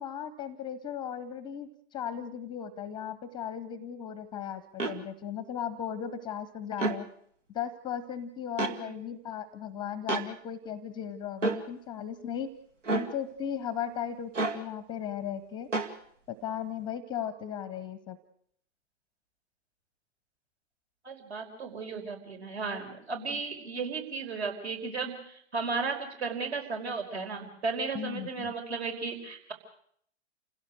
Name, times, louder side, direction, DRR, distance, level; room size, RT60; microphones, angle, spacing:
voice 1, 0.0-7.1 7.5-12.5 12.9-15.7 16.4-18.2 27.9-28.5, left 8 dB, 10° left, 16 dB, 0.8 m, -36 dB
sound 1, 4.8-5.0 6.7-7.0 8.6-8.8 10.1-10.3 11.4-11.6 12.8-13.1 14.3-14.6 15.7-15.9, right 3 dB, 80° right, 2.2 m, -29 dB
voice 2, 21.0-29.5, right 4 dB, 60° right, 5 dB, 5.4 m, -35 dB
28.5 x 16.5 x 6.4 m, 0.67 s
figure-of-eight pair, 125°, 37 cm